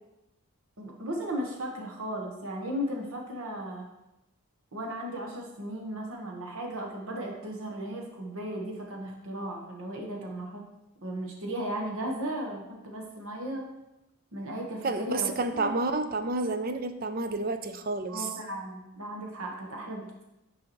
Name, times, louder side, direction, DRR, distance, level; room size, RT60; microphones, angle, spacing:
voice 1, 0.8-3.9 4.7-10.6 11.0-13.7 14.3-15.7 18.1-20.2, right 1 dB, 70° right, 0 dB, 1.3 m, -36 dB
voice 2, 14.8-18.3, right 3 dB, 40° right, 9 dB, 0.4 m, -30 dB
8.8 x 4.7 x 3.1 m, 0.92 s
head